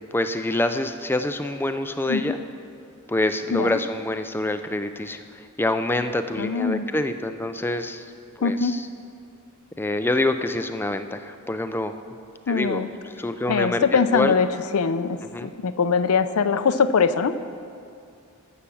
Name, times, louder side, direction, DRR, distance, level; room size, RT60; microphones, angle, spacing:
voice 1, 0.1-2.4 3.1-8.1 8.4-8.9 9.8-11.9 12.5-12.9 13.2-14.3 15.3-15.5, left 2 dB, 10° left, 8 dB, 0.4 m, -26 dB
voice 2, 6.4-6.9 8.4-8.8 12.5-12.9 13.5-14.5 14.7-17.3, left 5 dB, 90° left, 12 dB, 0.5 m, -22 dB
11.5 x 7.3 x 7.0 m, 2.4 s
head